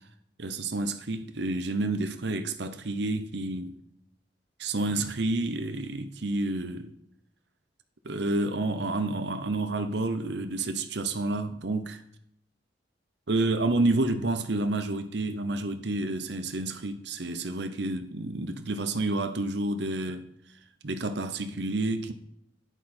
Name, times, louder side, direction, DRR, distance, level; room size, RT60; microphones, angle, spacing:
voice 1, 0.4-3.7 4.6-6.9 8.0-12.0 13.3-20.3 20.8-22.1, right 2 dB, 65° right, 0.8 m, -29 dB
11.5 x 10.0 x 4.4 m
head